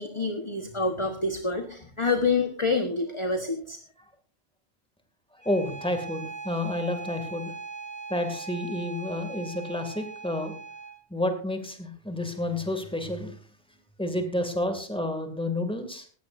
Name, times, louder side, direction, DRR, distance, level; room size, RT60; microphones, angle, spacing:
voice 1, 0.0-3.8, left 3 dB, 30° left, 5 dB, 1.3 m, -27 dB
voice 2, 5.3-7.5 8.1-10.6 11.1-13.4 14.0-16.1, left 1 dB, 5° left, 6 dB, 2.3 m, -30 dB
Bowed string instrument, 5.4-11.0, right 4 dB, 15° right, 3.0 m, -40 dB
19.0 x 15.5 x 2.6 m, 0.41 s
omnidirectional pair, 1.1 m